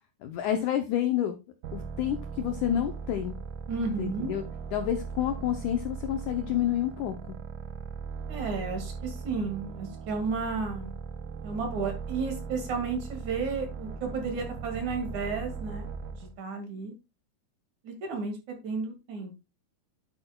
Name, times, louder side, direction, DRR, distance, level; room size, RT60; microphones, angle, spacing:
voice 1, 0.2-1.4 1.7-3.4 4.0-4.4 4.7-7.4, left 11 dB, 75° left, 7 dB, 1.8 m, -29 dB
sound 1, 1.6-16.4, right 5 dB, 75° right, 2.0 m, -39 dB
voice 2, 3.7-4.3 8.3-10.9 11.4-15.9 16.1-16.9 17.8-19.3, right 4 dB, 55° right, 4 dB, 3.1 m, -33 dB
9.9 x 7.9 x 2.3 m, 0.25 s
omnidirectional pair, 4.3 m